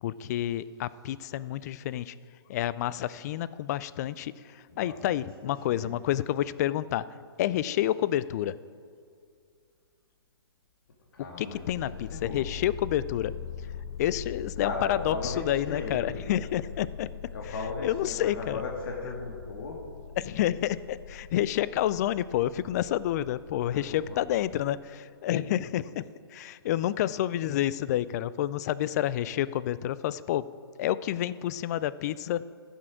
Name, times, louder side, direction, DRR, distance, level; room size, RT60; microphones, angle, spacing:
voice 1, 0.0-2.1 2.5-7.0 7.4-8.5 11.4-13.3 14.0-17.1 17.8-18.6 20.2-26.0 26.3-30.5 30.8-32.4, left 12 dB, 40° left, 17 dB, 0.4 m, -29 dB
voice 2, 4.7-5.9 11.1-12.4 14.6-16.1 17.3-19.9 23.6-24.2, left 3 dB, 60° left, 0 dB, 1.7 m, -37 dB
sound 1, 11.4-24.7, left 7 dB, 75° left, 1.0 m, -42 dB
15.0 x 6.4 x 4.9 m, 2.2 s
figure-of-eight pair, 125°, 13 cm